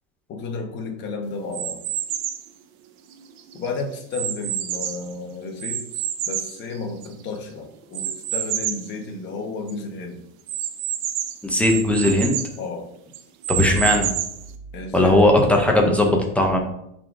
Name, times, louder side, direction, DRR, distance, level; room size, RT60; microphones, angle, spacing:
voice 1, 0.3-1.8 3.5-10.2 12.6-12.9 14.7-15.3, left 3 dB, 30° left, 2 dB, 1.0 m, -32 dB
sound 1, 1.5-2.5 3.1-5.1 5.6-7.3 7.9-8.9 9.4-9.5 9.7-9.8 10.5-12.6 13.1-14.5, right 10 dB, 45° right, 0.6 m, -28 dB
voice 2, 11.4-12.4 13.5-14.1 14.9-16.6, left 1 dB, 5° left, 1 dB, 0.4 m, -18 dB
10.5 x 3.8 x 2.5 m, 0.79 s
supercardioid pair, 155°, 38 cm